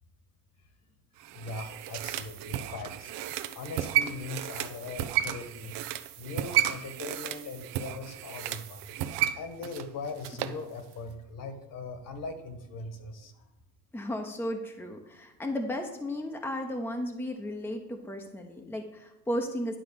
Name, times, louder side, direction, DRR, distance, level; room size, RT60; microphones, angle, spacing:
sound 1, 1.2-10.6 10.9-11.0, right 12 dB, 70° right, 0.8 m, -33 dB
voice 1, 1.3-3.2 3.5-5.8 6.2-8.9 9.3-13.5, left 3 dB, 45° left, 7 dB, 1.7 m, -40 dB
voice 2, 13.9-19.8, left 1 dB, 5° left, 2 dB, 0.9 m, -34 dB
11.0 x 3.9 x 7.0 m, 0.94 s
supercardioid pair, 110°, 43 cm